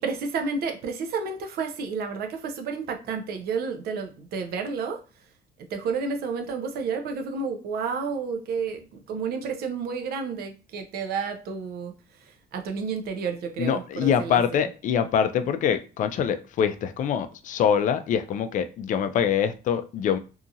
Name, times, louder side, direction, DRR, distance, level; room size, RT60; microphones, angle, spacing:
voice 1, 0.0-5.0 5.7-11.9 12.2-14.7, right 5 dB, 65° right, 5 dB, 0.6 m, -31 dB
voice 2, 13.6-20.2, left 8 dB, 50° left, 9 dB, 0.4 m, -24 dB
2.8 x 2.4 x 2.7 m, 0.34 s
cardioid pair, 110°, 17 cm